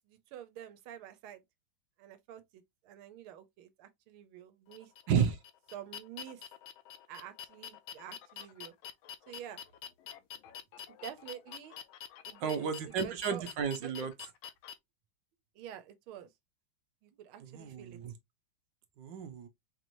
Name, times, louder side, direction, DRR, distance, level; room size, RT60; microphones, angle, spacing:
voice 1, 0.0-1.4 2.0-4.9 5.7-6.4 7.1-8.7 9.3-9.6 10.9-11.8 12.3-13.5 13.8-13.9 15.6-16.3 17.0-18.0, right 10 dB, 85° right, 1.6 m, -48 dB
sound 1, 4.7-14.7, left 8 dB, 85° left, 1.4 m, -47 dB
voice 2, 5.1-5.4 12.4-14.1 17.5-18.1 19.0-19.5, right 7 dB, 65° right, 1.3 m, -32 dB
4.8 x 3.0 x 2.6 m
omnidirectional pair, 2.3 m